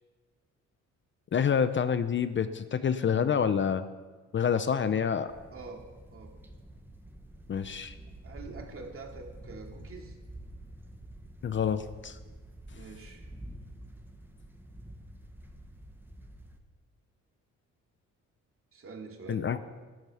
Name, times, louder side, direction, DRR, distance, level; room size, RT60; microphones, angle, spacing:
voice 1, 1.3-3.8 4.3-5.3 7.5-8.0 11.4-12.2 19.3-19.6, left 7 dB, 40° left, 12 dB, 0.7 m, -27 dB
sound 1, 5.3-16.6, right 1 dB, 5° right, 1.4 m, -48 dB
voice 2, 5.5-5.8 6.1-6.3 8.2-10.2 12.7-13.3 18.7-19.6, right 4 dB, 45° right, 1 dB, 2.8 m, -45 dB
13.5 x 10.5 x 5.7 m, 1.3 s
cardioid pair, 90°, 30 cm